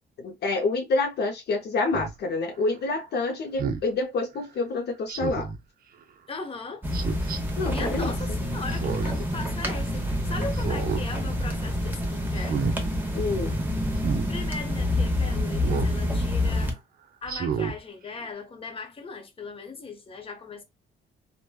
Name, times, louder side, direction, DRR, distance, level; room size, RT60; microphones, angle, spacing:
voice 1, 0.2-5.5 7.6-8.1 13.1-13.6, left 3 dB, 55° left, 0.5 m, -27 dB
Speech synthesizer, 1.9-2.1 3.6-3.9 5.1-5.6 6.9-7.4 8.7-9.2 9.6-9.7 10.5-11.1 11.4-11.7 12.4-12.8 14.0-14.3 15.6-16.0 16.5-16.6 17.3-17.8 18.2-18.3, right 6 dB, 50° right, 0.5 m, -30 dB
voice 2, 6.3-6.9 7.5-12.6 14.0-16.8 17.2-20.6, left 4 dB, 30° left, 0.7 m, -38 dB
sound 1, 6.8-16.7, left 1 dB, 10° right, 0.8 m, -27 dB
3.0 x 2.1 x 2.2 m
cardioid pair, 90°, 20 cm